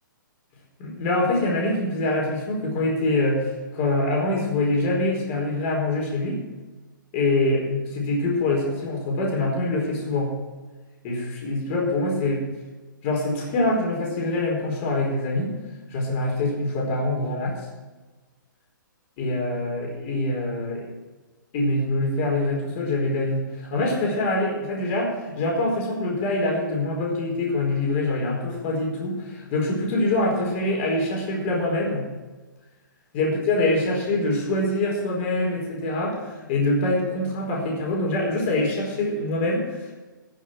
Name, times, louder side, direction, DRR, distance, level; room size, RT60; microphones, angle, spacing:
voice 1, 0.8-6.4 7.1-10.3 11.0-12.4 13.0-15.6 15.9-17.7 19.2-20.9 21.5-32.0 33.1-39.9, left 2 dB, 35° left, -1 dB, 4.6 m, -24 dB
18.5 x 6.6 x 6.1 m, 1.3 s
figure-of-eight pair, 135°, 11 cm